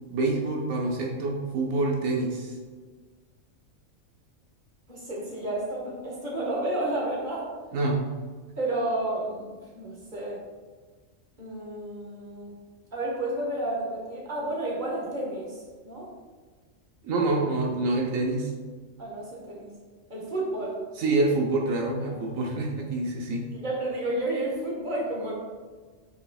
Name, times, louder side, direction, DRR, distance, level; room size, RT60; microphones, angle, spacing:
voice 1, 0.1-2.6 7.7-8.0 17.0-18.5 21.0-23.5, right 2 dB, 80° right, -1 dB, 1.2 m, -26 dB
voice 2, 4.9-7.5 8.6-10.4 11.4-12.5 12.9-16.1 19.0-19.7 20.1-20.8 22.0-22.1 23.5-25.4, right 1 dB, 35° right, -3 dB, 1.6 m, -31 dB
8.1 x 5.3 x 2.3 m, 1.5 s
omnidirectional pair, 1.4 m